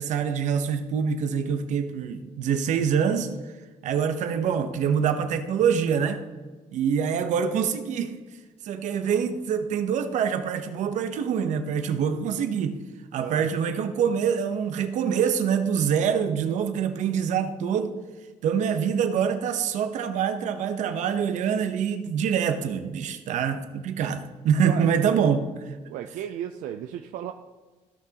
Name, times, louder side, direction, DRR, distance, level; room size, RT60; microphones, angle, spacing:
voice 1, 0.0-3.5 3.8-6.2 6.7-8.2 8.6-12.8 13.1-17.9 18.4-25.8, right 7 dB, 65° right, 8 dB, 0.9 m, -25 dB
voice 2, 24.6-25.2 25.9-27.3, right 10 dB, 85° right, 6 dB, 0.5 m, -34 dB
15.5 x 6.0 x 2.9 m, 1.3 s
cardioid pair, 140°, 13 cm